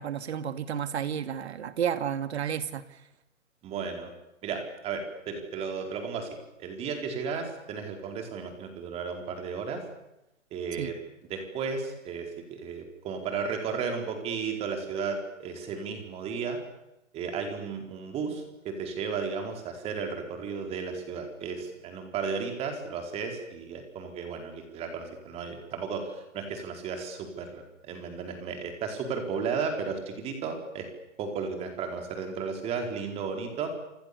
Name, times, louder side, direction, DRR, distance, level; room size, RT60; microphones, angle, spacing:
voice 1, 0.0-2.9 10.8-10.9, right 8 dB, 50° right, 11 dB, 2.6 m, -31 dB
voice 2, 3.6-4.1 4.4-9.8 10.5-10.9 11.3-16.6 17.1-30.9 31.2-33.7, right 5 dB, 15° right, 5 dB, 4.7 m, -34 dB
27.5 x 27.5 x 7.0 m, 0.89 s
hypercardioid pair, 160°, 40 cm